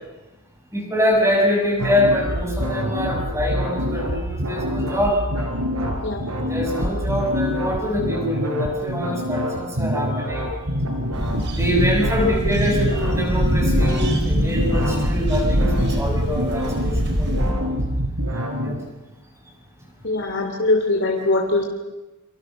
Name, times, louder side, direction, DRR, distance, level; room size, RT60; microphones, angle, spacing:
voice 1, 0.7-5.2 6.3-10.5 11.5-16.9 17.2-17.4 18.6-18.7, left 1 dB, 15° right, 1 dB, 7.0 m, -24 dB
sound 1, 1.8-18.8, equal, 80° right, 4.5 m, -26 dB
sound 2, 11.1-17.5, equal, 50° right, 4.8 m, -23 dB
voice 2, 20.0-21.6, left 2 dB, 55° left, 1 dB, 3.0 m, -21 dB
29.5 x 26.0 x 6.4 m, 1.0 s
head